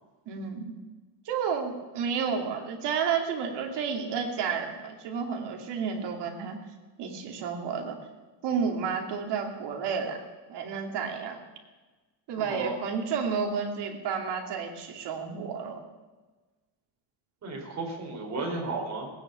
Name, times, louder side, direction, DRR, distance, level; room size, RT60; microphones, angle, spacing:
voice 1, 0.3-0.7 1.2-6.6 7.0-8.0 8.4-10.2 10.5-11.4 12.3-15.8, right 6 dB, 60° right, 3 dB, 2.9 m, -31 dB
voice 2, 12.4-12.8 17.4-19.1, right 3 dB, 35° right, 0 dB, 4.6 m, -34 dB
19.0 x 9.9 x 7.0 m, 1.3 s
cardioid pair, 155°, 46 cm